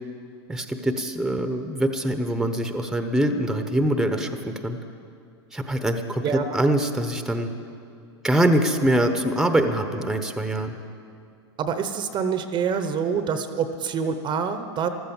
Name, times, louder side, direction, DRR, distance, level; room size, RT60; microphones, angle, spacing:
voice 1, 0.5-4.8 5.5-7.5 8.2-10.8, right 1 dB, 5° right, 7 dB, 0.9 m, -24 dB
voice 2, 6.2-6.6 11.6-14.9, right 6 dB, 30° right, 9 dB, 0.9 m, -26 dB
14.5 x 13.0 x 7.1 m, 2.4 s
hypercardioid pair, 115°, 15 cm